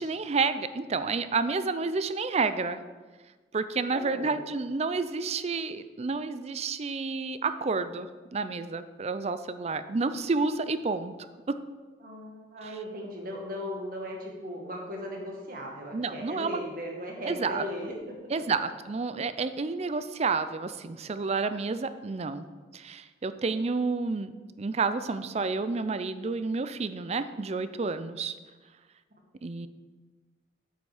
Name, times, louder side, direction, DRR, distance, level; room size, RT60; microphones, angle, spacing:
voice 1, 0.0-2.8 3.5-11.1 11.5-11.6 15.9-16.6 17.3-17.6 18.3-22.5 22.7-24.3 24.6-28.4 29.4-29.7, right 4 dB, 35° right, 12 dB, 0.4 m, -30 dB
voice 2, 3.9-4.4 12.0-18.2 23.5-23.6, equal, 55° right, 0 dB, 2.0 m, -38 dB
8.0 x 7.8 x 4.9 m, 1.3 s
head